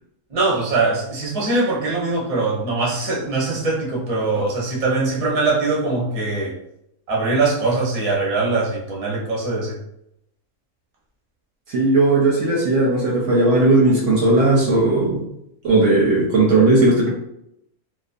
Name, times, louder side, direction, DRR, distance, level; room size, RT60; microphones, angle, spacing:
voice 1, 0.3-6.5 7.1-9.8, right 3 dB, 35° right, -4 dB, 0.6 m, -22 dB
voice 2, 11.7-15.3 15.6-17.1, right 2 dB, 70° right, -3 dB, 0.8 m, -16 dB
2.4 x 2.2 x 2.5 m, 0.78 s
omnidirectional pair, 1.5 m